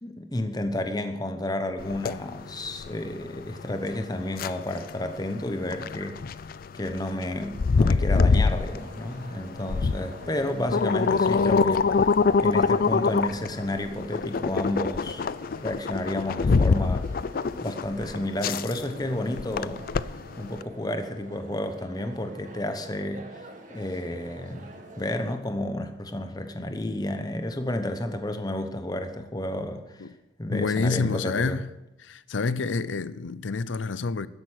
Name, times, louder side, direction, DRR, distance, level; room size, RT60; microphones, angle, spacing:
voice 1, 0.0-6.2 6.7-11.9 12.4-15.2 15.6-17.1 17.6-19.8 20.4-23.3 23.7-30.0 30.4-31.6, left 1 dB, 20° left, 1.0 m, -31 dB
sound 1, 1.8-20.6, left 4 dB, 50° left, 0.4 m, -25 dB
sound 2, 8.0-25.4, right 2 dB, 45° right, 1.9 m, -47 dB
voice 2, 30.5-31.7 32.0-34.3, left 4 dB, 90° left, 0.6 m, -28 dB
13.5 x 10.5 x 6.5 m
head